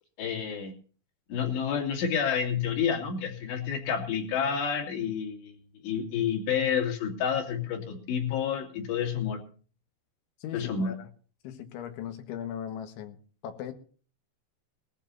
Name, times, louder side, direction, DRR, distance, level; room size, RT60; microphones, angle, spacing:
voice 1, 0.2-0.7 1.3-5.6 5.8-9.4 10.5-10.9, left 7 dB, 70° left, 4.7 m, -29 dB
voice 2, 10.4-11.1 11.4-13.2 13.4-13.7, left 9 dB, 90° left, 4.0 m, -38 dB
21.0 x 15.0 x 2.8 m
omnidirectional pair, 5.2 m